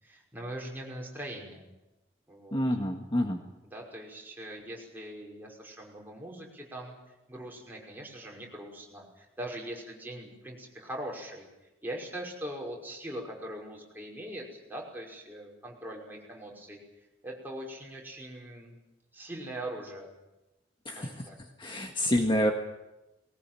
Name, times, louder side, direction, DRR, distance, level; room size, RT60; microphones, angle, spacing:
voice 1, 0.0-1.7 2.3-2.6 3.7-7.0 7.3-11.5 11.8-16.8 17.2-18.8 19.1-20.1 20.9-21.4, right 1 dB, 10° right, -2 dB, 5.7 m, -41 dB
voice 2, 2.5-3.4 20.8-21.3 21.6-22.5, equal, 30° left, 3 dB, 1.6 m, -28 dB
20.5 x 19.0 x 9.1 m, 0.99 s
head